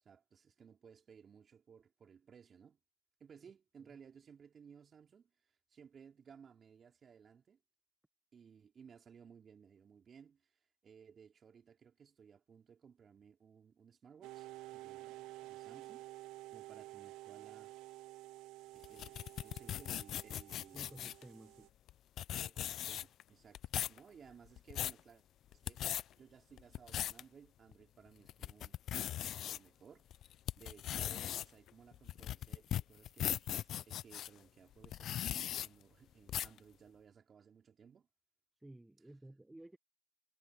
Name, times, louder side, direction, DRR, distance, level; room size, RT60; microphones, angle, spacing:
voice 1, 0.0-2.8 3.2-7.6 8.3-10.5 10.8-16.2 16.5-17.7 18.3-18.4 18.7-20.9 22.3-25.2 25.5-25.8 26.2-28.8 29.2-38.1, right 7 dB, 35° right, 4.3 m, -60 dB
sound 1, 14.2-21.7, right 18 dB, 65° right, 0.4 m, -51 dB
sound 2, 18.8-21.2 21.9-22.0 22.2-23.2 23.5-24.0 24.5-25.0 25.5-26.0 26.6-27.2 27.7-27.8 28.3-29.6 30.1-34.3 34.8-35.7 36.3-36.6, left 11 dB, 50° left, 0.5 m, -39 dB
voice 2, 20.7-21.7 38.6-39.8, right 1 dB, 10° right, 1.3 m, -55 dB
supercardioid pair, 105°, 0 cm